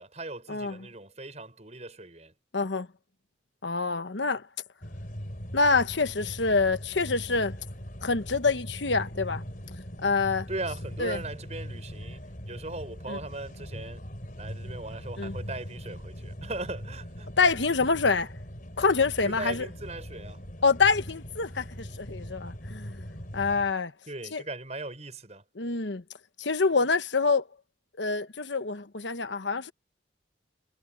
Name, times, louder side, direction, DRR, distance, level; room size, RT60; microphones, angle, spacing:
voice 1, 0.0-2.3 10.5-14.1 14.4-17.3 19.2-20.5 24.1-25.4, right 2 dB, 35° right, 6.4 m, -39 dB
voice 2, 2.5-2.9 3.6-4.4 5.5-7.6 8.0-9.4 10.0-10.5 11.0-11.2 13.1-13.2 15.2-15.3 17.4-18.3 18.8-19.7 20.6-23.1 23.3-23.9 24.3-24.4 25.6-26.0 26.4-27.5 28.0-29.7, left 4 dB, 75° left, 1.2 m, -26 dB
sound 1, 4.8-23.7, equal, 45° left, 4.5 m, -41 dB
head